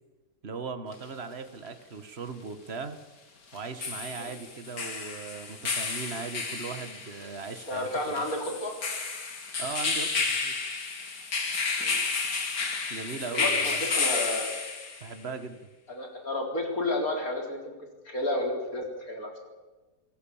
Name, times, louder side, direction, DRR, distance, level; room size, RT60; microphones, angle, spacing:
voice 1, 0.4-3.0 3.5-8.2 9.6-10.5 12.9-13.9 15.0-15.7, right 5 dB, 40° right, 9 dB, 1.8 m, -38 dB
sound 1, 0.9-1.0 3.5-15.1, left 4 dB, 80° left, 3.0 m, -31 dB
voice 2, 7.7-8.7 11.8-12.0 13.3-14.5 15.9-17.7 18.0-19.4, left 1 dB, 55° left, 2 dB, 4.7 m, -31 dB
28.0 x 17.0 x 7.3 m, 1.2 s
omnidirectional pair, 1.8 m